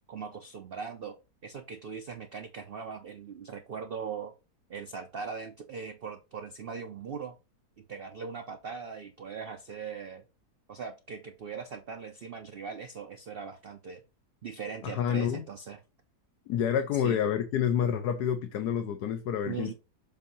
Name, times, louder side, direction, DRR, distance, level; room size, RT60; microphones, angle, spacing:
voice 1, 0.1-1.2 1.4-4.3 4.7-7.4 7.8-10.2 10.7-14.0 14.4-15.8 16.9-17.2 19.5-19.7, right 6 dB, 60° right, 0.6 m, -40 dB
voice 2, 14.8-15.4 16.5-19.7, left 8 dB, 80° left, 1.3 m, -28 dB
7.3 x 2.7 x 5.4 m
omnidirectional pair, 1.7 m